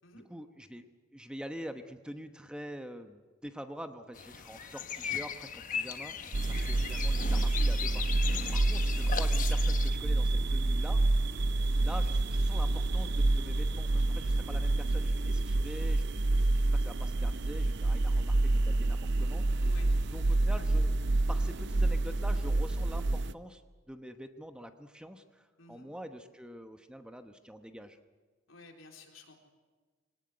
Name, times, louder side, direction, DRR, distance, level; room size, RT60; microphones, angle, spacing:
voice 1, 0.3-0.9 1.1-8.3 8.5-11.0 11.8-19.6 20.1-23.6 23.9-28.0, equal, 5° right, 8 dB, 1.0 m, -45 dB
sound 1, 4.2-9.9, left 7 dB, 40° left, 1.2 m, -38 dB
sound 2, 6.3-23.3, right 2 dB, 60° right, 0.7 m, -28 dB
voice 2, 6.4-6.8 8.5-8.6 11.3-11.6 19.6-19.9 25.6-25.9 28.5-29.4, left 3 dB, 75° left, 3 dB, 3.8 m, -53 dB
23.5 x 18.0 x 9.6 m, 1.4 s
head